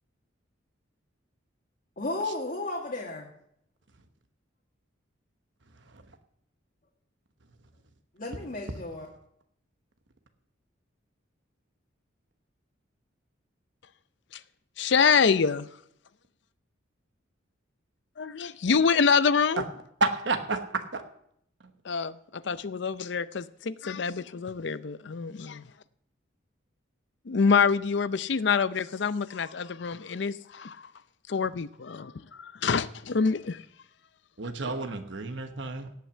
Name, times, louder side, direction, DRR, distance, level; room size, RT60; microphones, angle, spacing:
voice 1, 2.0-3.3 8.2-9.1, left 2 dB, 45° left, 1.7 m, -33 dB
voice 2, 14.8-15.7 18.2-19.6 21.9-25.6 27.3-30.8 31.3-33.6, left 5 dB, 60° left, 0.5 m, -26 dB
voice 3, 20.0-20.6 20.9-21.0 34.4-35.9, right 3 dB, 65° right, 1.1 m, -29 dB
17.5 x 5.9 x 7.2 m
head